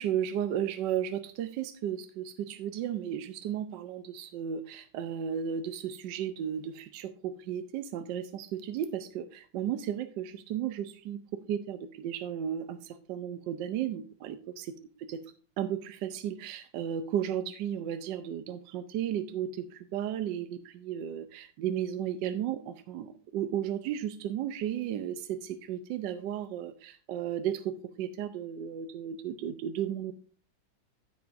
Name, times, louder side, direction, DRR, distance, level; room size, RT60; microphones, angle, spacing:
voice 1, 0.0-14.7 15.1-15.2 15.6-30.1, right 9 dB, 75° right, 9 dB, 1.2 m, -34 dB
16.0 x 5.8 x 2.6 m, 0.39 s
omnidirectional pair, 2.1 m